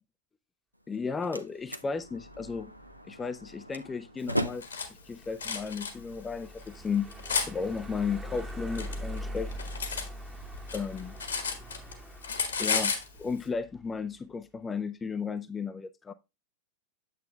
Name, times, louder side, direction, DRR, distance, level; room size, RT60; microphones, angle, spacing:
Slam, 0.8-6.7, equal, 90° right, 0.5 m, -39 dB
voice 1, 0.9-2.7 3.0-4.7 5.1-7.1 7.5-9.5 10.7-11.1 12.6-16.1, left 5 dB, 15° left, 0.5 m, -34 dB
sound 1, 2.0-14.1, equal, 10° right, 1.1 m, -43 dB
Cutlery silverware, 4.3-4.9 5.4-5.9 6.6-7.5 8.4-10.1 10.4-11.9 12.2-13.1, left 5 dB, 70° left, 1.6 m, -32 dB
8.7 x 7.7 x 2.3 m
figure-of-eight pair, 90°, 0 cm